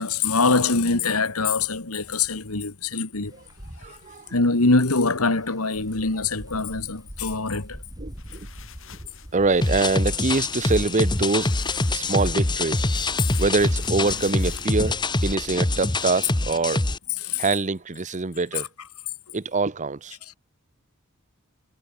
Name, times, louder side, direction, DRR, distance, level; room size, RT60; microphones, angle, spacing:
voice 1, 0.0-3.3 4.3-7.8 12.0-12.1 17.2-17.4, left 3 dB, 85° left, 2.2 m, -23 dB
Wind, 3.2-16.4, equal, 15° right, 3.2 m, -45 dB
voice 2, 3.8-4.3 8.0-8.5 9.3-11.5 11.9-12.9 13.4-15.0 15.2-16.9 17.4-18.7 19.3-20.2, right 3 dB, 35° right, 0.8 m, -24 dB
sound 1, 8.1-15.3, left 4 dB, 60° left, 4.6 m, -44 dB
sound 2, 9.6-17.0, left 2 dB, 20° left, 1.1 m, -25 dB
head